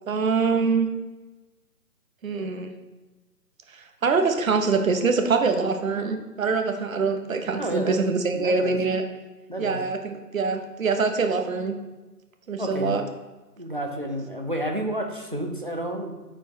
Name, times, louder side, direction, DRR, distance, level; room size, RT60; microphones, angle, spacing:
voice 1, 0.1-0.9 2.2-2.7 3.7-9.0 9.6-11.8 12.5-13.0, right 4 dB, 55° right, 5 dB, 0.9 m, -24 dB
voice 2, 7.6-8.0 8.3-8.8 9.5-9.8 12.6-13.0 13.6-16.1, right 1 dB, 35° right, 2 dB, 0.5 m, -30 dB
9.0 x 4.4 x 2.8 m, 1.2 s
hypercardioid pair, 175°, 48 cm